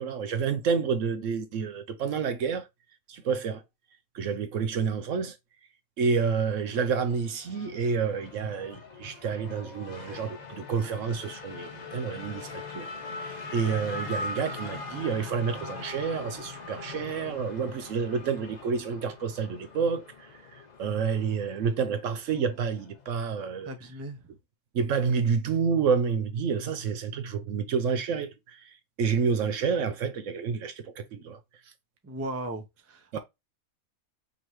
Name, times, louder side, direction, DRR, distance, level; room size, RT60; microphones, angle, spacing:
voice 1, 0.0-2.7 3.1-3.6 4.1-5.4 6.0-12.9 13.2-23.7 24.7-31.4 33.1-33.2, right 6 dB, 65° right, 1.0 m, -29 dB
Race car auto racing / Accelerating revving vroom, 6.1-23.1, left 3 dB, 35° left, 0.8 m, -42 dB
voice 2, 23.6-24.2 32.0-33.2, right 2 dB, 15° right, 0.5 m, -37 dB
5.5 x 2.9 x 3.1 m
omnidirectional pair, 1.5 m